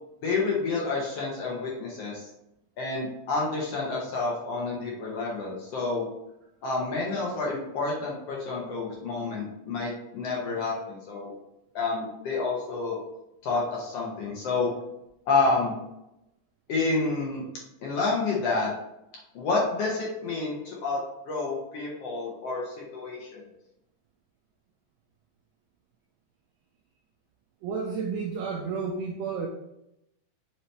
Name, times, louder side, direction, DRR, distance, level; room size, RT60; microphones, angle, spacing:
voice 1, 0.2-2.3 2.8-6.1 6.6-11.3 11.7-13.0 13.4-14.7 15.3-15.7 16.7-17.4 17.8-18.7 19.3-23.4, left 3 dB, 70° left, -3 dB, 1.6 m, -29 dB
voice 2, 27.6-29.5, right 5 dB, 85° right, 0 dB, 1.5 m, -31 dB
5.3 x 2.8 x 3.2 m, 0.85 s
omnidirectional pair, 3.5 m